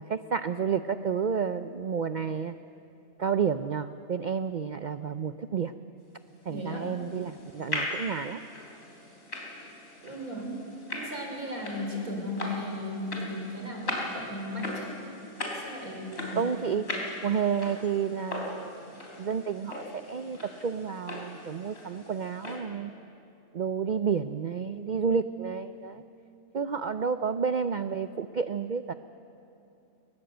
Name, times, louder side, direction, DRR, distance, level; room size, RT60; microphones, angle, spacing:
voice 1, 0.0-2.6 3.2-5.7 6.5-8.4 16.4-16.9 17.2-18.8 19.2-22.9 23.5-26.0 26.5-28.9, right 6 dB, 85° right, 11 dB, 0.4 m, -30 dB
voice 2, 6.5-6.9 10.0-10.5 10.9-14.9 15.6-16.5, left 1 dB, 70° right, 1 dB, 4.6 m, -36 dB
sound 1, 6.6-22.6, left 1 dB, 45° left, 3.7 m, -39 dB
21.0 x 20.5 x 8.0 m, 2.8 s
omnidirectional pair, 1.5 m